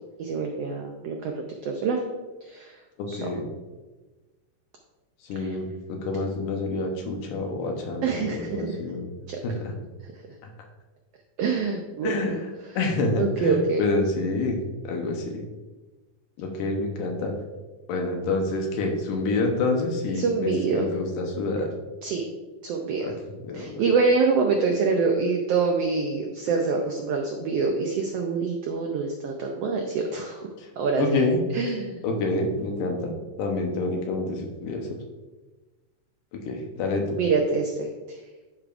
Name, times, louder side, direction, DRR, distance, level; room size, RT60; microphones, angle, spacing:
voice 1, 0.2-1.3 1.6-2.0 2.5-2.7 3.1-3.2 5.4-5.5 8.0-8.8 9.3-9.4 11.4-12.4 13.2-13.8 20.2-20.9 22.0-22.3 22.6-23.1 23.5-30.5 30.8-31.2 31.5-32.0 37.2-37.9, right 4 dB, 90° right, 2 dB, 1.3 m, -25 dB
voice 2, 3.0-3.5 5.3-9.1 9.4-9.8 12.0-12.5 12.8-14.6 14.9-15.4 16.4-17.3 17.9-21.7 23.0-23.1 23.4-23.8 31.0-31.4 32.0-33.1 33.4-34.9 36.5-37.0, left 2 dB, 85° left, 2 dB, 2.6 m, -27 dB
12.0 x 4.8 x 2.5 m, 1.2 s
omnidirectional pair, 3.6 m